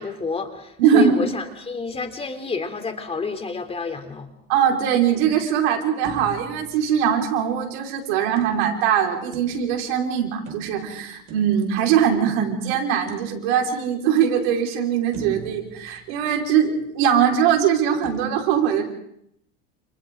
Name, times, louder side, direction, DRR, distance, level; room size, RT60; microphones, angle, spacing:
voice 1, 0.0-4.3, left 4 dB, 20° left, 6 dB, 3.3 m, -29 dB
voice 2, 0.8-1.2 4.5-18.8, right 8 dB, 75° right, 1 dB, 5.1 m, -21 dB
sound 1, 6.0-7.6 8.4-10.0 10.4-12.4 13.1-13.9 14.4-14.5 15.1-16.8 18.0-18.1, right 5 dB, 50° right, 5.8 m, -42 dB
29.0 x 29.0 x 3.9 m, 0.74 s
supercardioid pair, 115°, 30 cm